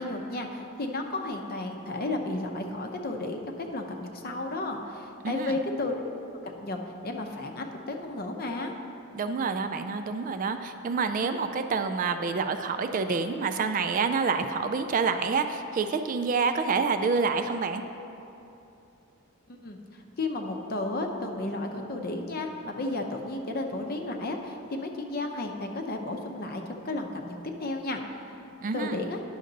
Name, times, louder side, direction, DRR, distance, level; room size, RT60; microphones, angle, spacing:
voice 1, 0.0-6.1 6.4-8.7 19.5-28.0 28.7-29.2, left 2 dB, 45° left, 3 dB, 0.7 m, -33 dB
voice 2, 5.2-5.6 9.1-17.8 28.6-29.0, right 4 dB, 40° right, 8 dB, 0.3 m, -27 dB
10.5 x 6.4 x 3.9 m, 2.8 s
head